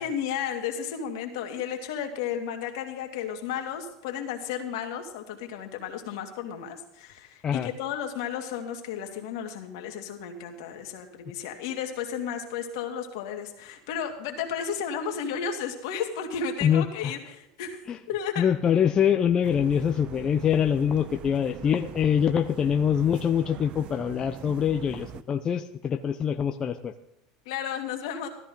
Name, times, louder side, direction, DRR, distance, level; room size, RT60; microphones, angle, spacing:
voice 1, 0.0-17.8 18.1-18.5 27.5-28.3, left 7 dB, 75° left, 4 dB, 2.3 m, -33 dB
voice 2, 16.6-17.1 17.9-18.0 18.4-26.9, left 8 dB, 30° left, 6 dB, 0.7 m, -24 dB
sound 1, 19.4-25.2, right 11 dB, 45° right, 0.6 m, -42 dB
14.0 x 13.5 x 3.9 m, 0.84 s
supercardioid pair, 110°, 2 cm